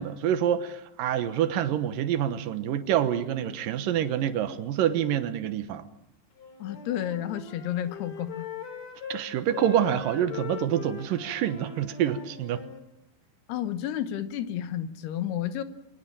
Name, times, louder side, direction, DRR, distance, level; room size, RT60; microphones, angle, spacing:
voice 1, 0.0-5.8 9.1-12.6, right 10 dB, 70° right, 2.2 m, -27 dB
Wind instrument woodwind instrument, 6.4-9.3 9.5-12.8, left 6 dB, 40° left, 3.6 m, -40 dB
voice 2, 6.6-8.5 13.5-15.6, left 11 dB, 70° left, 2.8 m, -31 dB
24.5 x 19.5 x 8.8 m
omnidirectional pair, 5.4 m